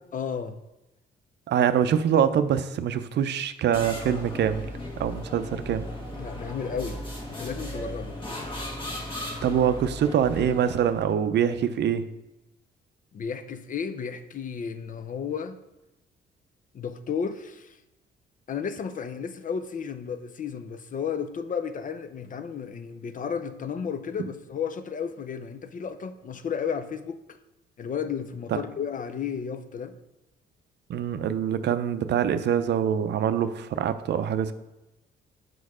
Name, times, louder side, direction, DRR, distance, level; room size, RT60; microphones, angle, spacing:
voice 1, 0.1-0.6 6.2-7.0 7.3-8.2 13.1-15.6 16.7-17.8 18.5-27.2 27.8-30.0, left 7 dB, 40° left, 0.5 m, -33 dB
voice 2, 1.5-4.6 5.0-5.9 9.4-12.1 24.2-24.3 30.9-34.5, right 8 dB, 60° right, 0.5 m, -24 dB
sound 1, 3.7-11.1, left 1 dB, 25° left, 1.5 m, -36 dB
6.4 x 4.6 x 4.8 m
cardioid pair, 90°, 20 cm